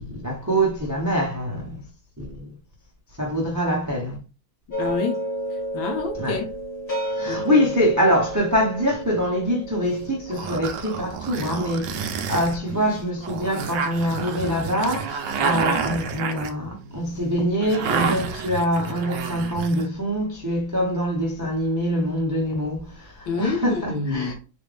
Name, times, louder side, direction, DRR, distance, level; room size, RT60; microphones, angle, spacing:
voice 1, 0.0-1.8 2.2-2.5 3.2-4.2 6.2-6.4 7.1-24.3, equal, 25° right, 0.4 m, -24 dB
sound 1, 4.7-13.9, right 1 dB, 30° left, 2.0 m, -32 dB
voice 2, 4.8-5.2 5.5-6.4 7.3-7.7 23.3-24.3, left 4 dB, 75° left, 1.5 m, -28 dB
sound 2, 9.8-19.9, right 6 dB, 75° right, 1.1 m, -29 dB
4.3 x 2.6 x 3.3 m
omnidirectional pair, 2.3 m